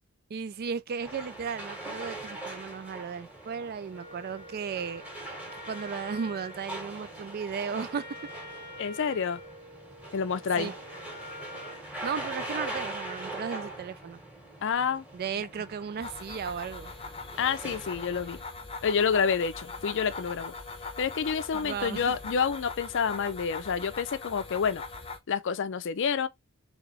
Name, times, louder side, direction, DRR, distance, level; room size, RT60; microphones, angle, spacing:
voice 1, 0.3-5.0 5.7-8.1 10.6-10.7 12.0-14.2 15.1-16.9 21.5-22.1, right 6 dB, 45° right, 0.4 m, -35 dB
sound 1, 1.0-18.4, right 1 dB, 5° right, 1.7 m, -42 dB
Wind instrument woodwind instrument, 3.9-11.9, left 1 dB, 60° right, 2.0 m, -47 dB
voice 2, 8.8-9.4 10.1-10.7 14.6-15.0 17.4-18.4 18.8-20.5 21.0-24.8 25.3-26.3, left 6 dB, 60° left, 0.5 m, -28 dB
sound 2, 16.0-25.2, left 3 dB, 25° left, 0.7 m, -41 dB
4.0 x 3.5 x 3.0 m
head